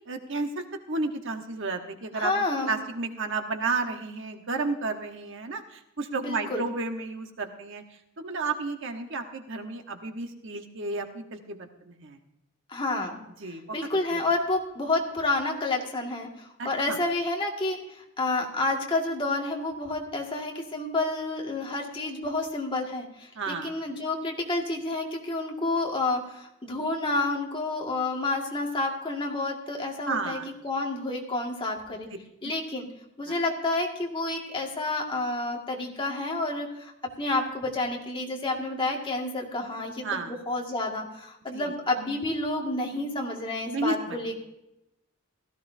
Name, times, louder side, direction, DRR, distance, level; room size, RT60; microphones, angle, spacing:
voice 1, 0.1-7.8 8.2-12.2 13.4-13.6 14.1-14.2 16.6-17.0 23.3-23.7 30.1-30.5 32.4-32.5 33.3-33.4 40.0-40.3 41.5-41.7 43.7-44.2, right 3 dB, 60° right, 5 dB, 1.2 m, -32 dB
voice 2, 2.1-2.7 6.2-6.6 12.7-13.2 13.7-32.1 32.4-32.9 33.2-36.9 37.2-44.4, left 2 dB, 25° left, 0 dB, 2.0 m, -29 dB
16.5 x 14.0 x 2.7 m, 0.86 s
head